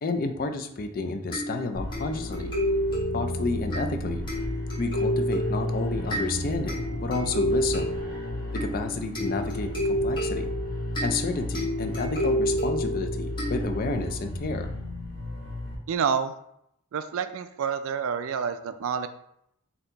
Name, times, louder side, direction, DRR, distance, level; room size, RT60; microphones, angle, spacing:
voice 1, 0.0-2.6 3.1-4.3 4.8-8.0 8.5-10.5 11.0-14.7, left 3 dB, 40° left, 6 dB, 0.4 m, -31 dB
sound 1, 1.3-14.1, equal, 20° left, 1.5 m, -30 dB
sound 2, 1.7-15.8, left 1 dB, 45° right, 1.2 m, -33 dB
voice 2, 15.9-16.3 16.9-19.1, right 6 dB, 65° right, 10 dB, 0.3 m, -28 dB
4.3 x 2.7 x 3.9 m, 0.76 s
head